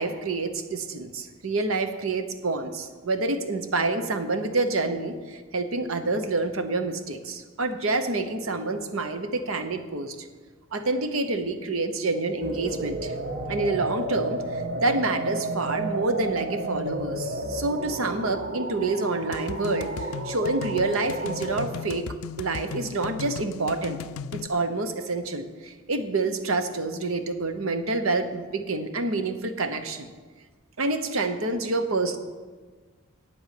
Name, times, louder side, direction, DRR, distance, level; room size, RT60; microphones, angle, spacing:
voice 1, 0.0-10.3 10.7-13.1 13.5-22.0 22.4-24.0 24.3-30.1 30.8-32.2, right 3 dB, 80° right, 8 dB, 1.0 m, -28 dB
sound 1, 12.4-21.7, right 2 dB, 45° right, 1.0 m, -32 dB
sound 2, 19.3-24.5, left 6 dB, 80° left, 0.4 m, -37 dB
8.9 x 8.1 x 8.5 m, 1.4 s
head